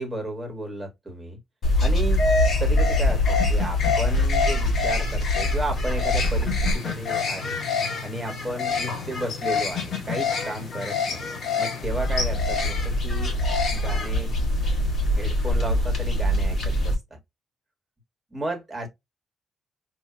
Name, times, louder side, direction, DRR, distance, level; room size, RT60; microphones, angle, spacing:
voice 1, 0.0-1.4 1.8-2.2 2.6-7.6 8.0-11.2 11.6-13.4 13.7-14.3 15.2-17.2 18.3-18.9, right 1 dB, 10° right, 1.5 m, -33 dB
sound 1, 1.6-16.9, left 2 dB, 45° left, 1.4 m, -24 dB
5.2 x 2.5 x 2.2 m
cardioid pair, 165°, 0 cm